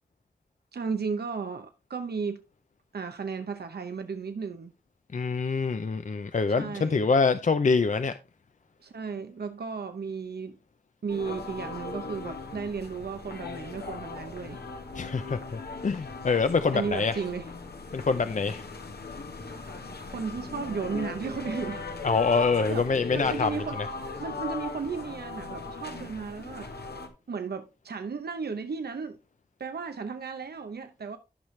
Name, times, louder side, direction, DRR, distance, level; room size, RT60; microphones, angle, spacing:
voice 1, 0.7-2.4 2.9-4.7 6.5-7.0 8.8-10.6 11.0-14.6 16.7-17.5 20.0-21.9 22.2-22.9 23.1-23.9 24.2-26.7 27.3-29.2 29.6-31.2, right 5 dB, 80° right, 0.8 m, -34 dB
voice 2, 5.1-8.1 14.9-17.2 17.9-18.6 22.0-23.6, left 4 dB, 50° left, 0.5 m, -25 dB
sound 1, 11.1-27.1, left 4 dB, 80° left, 1.4 m, -38 dB
12.0 x 5.6 x 3.2 m
wide cardioid pair, 50°, 16 cm